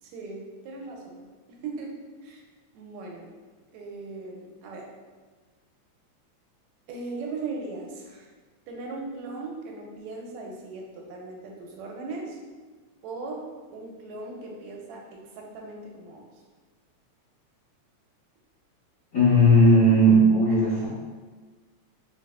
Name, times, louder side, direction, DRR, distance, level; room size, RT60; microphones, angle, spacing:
voice 1, 0.0-1.2 1.6-1.9 2.2-2.4 2.7-3.3 3.7-4.9 6.9-8.3 8.7-12.4 13.0-16.3, right 3 dB, 80° right, 0 dB, 1.8 m, -38 dB
voice 2, 19.1-20.9, equal, 80° left, -12 dB, 0.8 m, -17 dB
4.3 x 4.1 x 2.3 m, 1.4 s
omnidirectional pair, 3.3 m